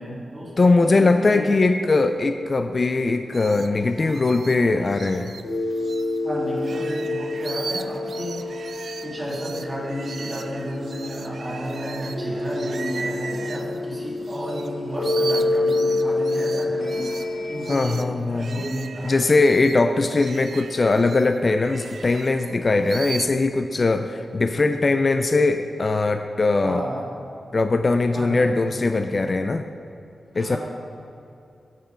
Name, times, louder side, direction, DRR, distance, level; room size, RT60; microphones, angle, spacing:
voice 1, 0.0-1.5 6.2-8.4 9.0-17.1 17.5-19.3 26.3-27.0 28.1-28.6 30.3-30.6, equal, 20° right, -5 dB, 2.3 m, -32 dB
voice 2, 0.6-5.3 17.7-18.6 19.0-26.8 27.5-29.6 30.4-30.6, left 3 dB, 35° left, 7 dB, 0.3 m, -20 dB
sound 1, 3.3-6.2 6.5-14.7 14.9-23.3, right 5 dB, 60° right, 0.3 m, -38 dB
sound 2, 5.4-17.7, left 2 dB, 60° left, 1.9 m, -28 dB
8.9 x 7.4 x 4.5 m, 2.6 s
wide cardioid pair, 140°, 0 cm